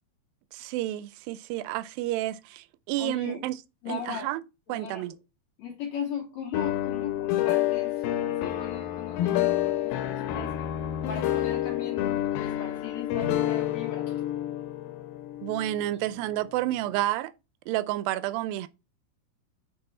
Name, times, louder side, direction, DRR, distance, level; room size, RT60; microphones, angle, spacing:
voice 1, 0.5-3.5 3.9-4.4 4.7-5.1 15.4-17.3 17.7-18.7, right 15 dB, 80° right, 2.2 m, -30 dB
voice 2, 3.0-3.5 3.8-4.3 4.7-5.2 5.6-10.7 11.1-14.2, left 8 dB, 70° left, 1.7 m, -38 dB
sound 1, 6.5-16.5, left 12 dB, 85° left, 2.5 m, -29 dB
6.8 x 3.6 x 4.1 m
omnidirectional pair, 4.2 m